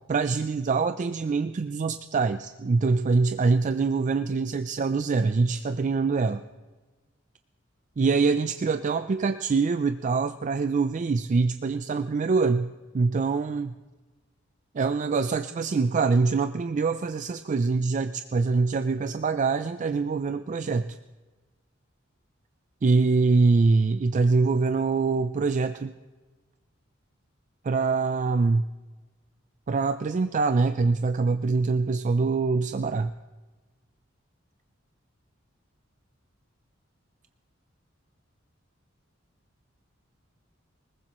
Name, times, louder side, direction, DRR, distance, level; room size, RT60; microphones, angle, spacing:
voice 1, 0.1-6.4 8.0-13.7 14.7-20.9 22.8-25.9 27.6-28.6 29.7-33.1, right 4 dB, 40° right, 10 dB, 0.4 m, -24 dB
20.5 x 19.5 x 3.0 m, 1.2 s
head